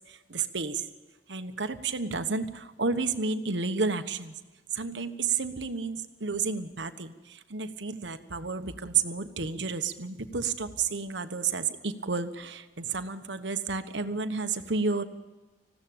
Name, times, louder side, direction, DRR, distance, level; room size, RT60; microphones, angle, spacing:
voice 1, 0.1-0.9 1.3-4.4 4.7-15.0, right 4 dB, 70° right, 9 dB, 1.3 m, -31 dB
20.0 x 15.5 x 8.7 m, 1.2 s
head